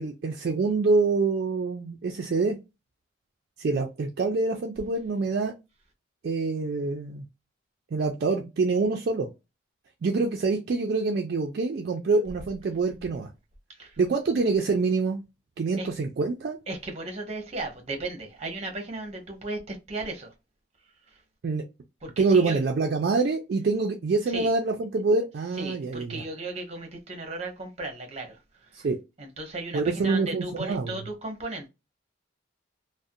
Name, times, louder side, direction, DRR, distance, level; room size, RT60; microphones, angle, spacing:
voice 1, 0.0-2.6 3.6-5.5 6.2-7.2 7.9-9.3 10.0-13.3 14.0-15.2 15.6-16.6 21.4-21.6 22.2-26.2 28.7-29.0 29.7-31.0, right 3 dB, 50° right, 0.3 m, -26 dB
voice 2, 16.7-20.3 21.1-21.2 22.0-22.6 24.3-24.5 25.6-28.9 29.2-31.7, right 2 dB, 30° right, 0.7 m, -36 dB
2.4 x 2.0 x 2.6 m
head